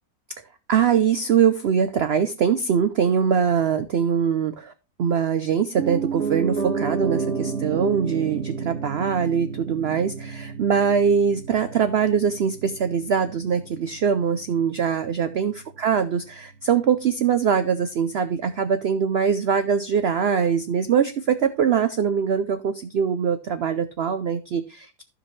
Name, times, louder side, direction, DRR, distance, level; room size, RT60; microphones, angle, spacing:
voice 1, 0.7-4.7 5.0-15.5 15.8-25.0, right 7 dB, 85° right, 11 dB, 0.5 m, -22 dB
Piano, 5.8-15.8 16.1-16.2, right 5 dB, 50° right, 2.4 m, -31 dB
14.5 x 5.1 x 3.2 m, 0.31 s
omnidirectional pair, 1.8 m